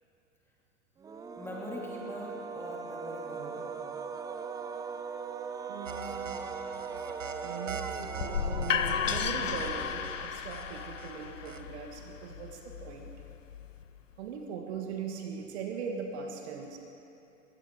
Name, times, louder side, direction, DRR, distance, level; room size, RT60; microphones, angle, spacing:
sound 1, 1.0-10.4, right 5 dB, 10° right, 0.4 m, -40 dB
voice 1, 1.4-3.8, left 1 dB, 5° left, -3 dB, 2.5 m, -42 dB
voice 2, 5.7-6.4 7.4-13.1 14.2-16.8, right 6 dB, 60° right, 3 dB, 1.7 m, -40 dB
sound 2, 5.9-11.6, right 5 dB, 80° right, 0.8 m, -42 dB
sound 3, 8.2-14.0, left 8 dB, 80° left, 0.6 m, -34 dB
22.0 x 16.5 x 3.7 m, 2.8 s
figure-of-eight pair, 80°, 38 cm